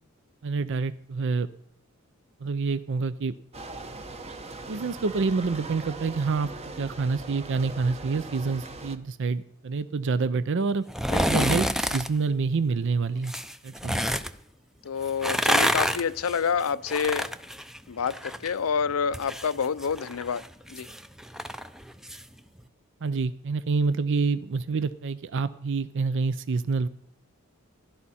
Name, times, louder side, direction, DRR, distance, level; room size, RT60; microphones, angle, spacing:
voice 1, 0.4-1.5 2.4-3.3 4.7-6.5 6.8-10.9 11.3-13.3 13.6-14.0 23.0-26.9, right 4 dB, 60° right, 14 dB, 0.5 m, -27 dB
sound 1, 3.5-9.0, right 2 dB, 30° right, 0.9 m, -40 dB
sound 2, 10.9-12.1 13.2-14.3 15.1-18.5 18.8-22.2 22.6-22.7, equal, ahead, 0.5 m, -28 dB
voice 2, 11.1-11.5 14.8-17.3 17.9-20.9, left 6 dB, 75° left, 15 dB, 0.5 m, -28 dB
15.5 x 12.5 x 4.2 m, 0.68 s
head